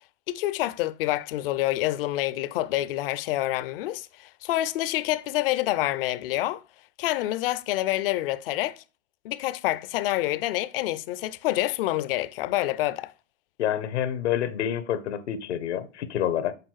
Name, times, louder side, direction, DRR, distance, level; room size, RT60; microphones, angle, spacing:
voice 1, 0.3-6.6 7.0-8.8 9.2-13.1, left 15 dB, 55° left, 0.6 m, -27 dB
voice 2, 13.6-16.5, left 10 dB, 75° left, 1.0 m, -28 dB
6.8 x 3.6 x 4.6 m
hypercardioid pair, 125°, 35 cm